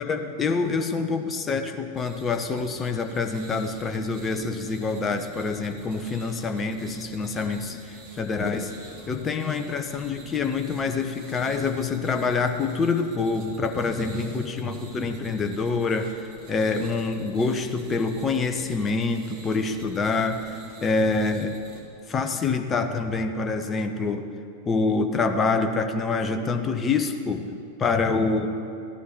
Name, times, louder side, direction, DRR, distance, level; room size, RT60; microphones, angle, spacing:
voice 1, 0.0-8.7 9.1-21.5 22.1-24.3 24.7-27.5 27.8-28.5, left 4 dB, 20° left, 6 dB, 0.9 m, -26 dB
sound 1, 1.9-21.8, right 3 dB, 45° right, 2.3 m, -46 dB
15.0 x 11.5 x 4.6 m, 2.5 s
figure-of-eight pair, 90°, 0 cm